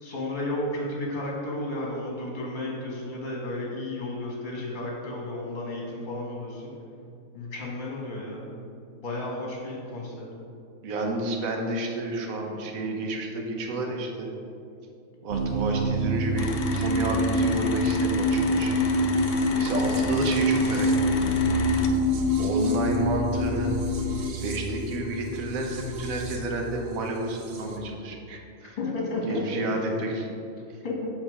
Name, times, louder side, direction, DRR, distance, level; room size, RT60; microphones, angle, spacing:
voice 1, 0.0-6.7 7.3-8.5 9.0-10.2 28.8-29.7 30.8-31.1, left 2 dB, 35° left, -2 dB, 1.4 m, -32 dB
voice 2, 10.8-14.3 15.2-18.8 19.5-21.3 22.4-23.7 24.4-28.8 29.2-30.3, right 2 dB, 75° right, 2 dB, 1.2 m, -31 dB
sound 1, 15.3-27.8, equal, 55° right, 0.9 m, -26 dB
sound 2, 16.4-21.9, left 5 dB, 60° left, 0.7 m, -35 dB
7.2 x 3.9 x 4.9 m, 2.6 s
omnidirectional pair, 1.5 m